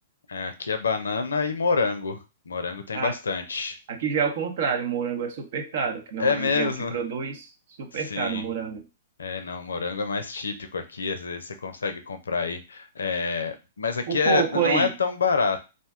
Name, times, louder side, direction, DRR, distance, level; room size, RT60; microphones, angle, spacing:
voice 1, 0.3-2.2 2.5-3.8 6.2-6.9 8.1-8.5 9.2-15.6, left 5 dB, 85° left, 8 dB, 0.5 m, -27 dB
voice 2, 3.9-7.5 7.8-8.8 14.1-14.9, right 6 dB, 60° right, 4 dB, 0.7 m, -28 dB
2.5 x 2.1 x 3.5 m, 0.29 s
hypercardioid pair, 120°, 0 cm